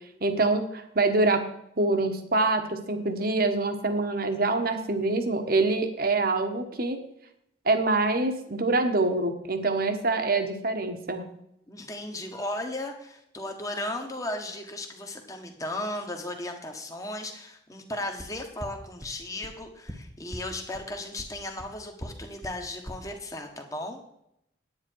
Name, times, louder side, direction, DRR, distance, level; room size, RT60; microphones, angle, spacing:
voice 1, 0.2-1.5 1.8-7.0 7.6-11.2, right 2 dB, 50° right, 7 dB, 1.3 m, -25 dB
voice 2, 11.7-24.0, left 1 dB, 15° left, 4 dB, 1.5 m, -36 dB
sound 1, 18.2-18.3 18.6-18.7 19.0-19.1 19.4-19.5 19.9-20.0 20.3-20.4 20.7-20.8 21.2-21.3 21.6-21.7 22.0-22.1 22.4-22.5 22.9-23.0, equal, 5° right, 1.1 m, -37 dB
9.9 x 9.4 x 4.6 m, 0.78 s
head